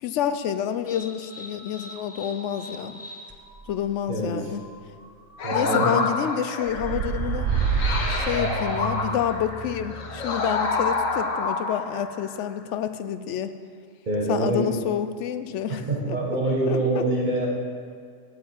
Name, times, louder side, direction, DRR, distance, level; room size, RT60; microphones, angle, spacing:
voice 1, 0.0-3.0 3.7-4.6 5.5-7.5 8.1-13.5 14.3-16.2 16.7-17.0, left 9 dB, 70° left, 11 dB, 0.9 m, -28 dB
sound 1, 0.9-11.5, right 1 dB, 15° left, 0.5 m, -41 dB
voice 2, 4.1-4.4 5.4-5.9 14.1-14.7 15.7-17.5, right 2 dB, 40° right, -3 dB, 1.3 m, -25 dB
sound 2, 5.4-12.3, left 3 dB, 90° left, 1.4 m, -28 dB
sound 3, 6.7-9.3, right 6 dB, 65° right, 0.9 m, -27 dB
8.2 x 6.7 x 7.3 m, 2.2 s
omnidirectional pair, 1.3 m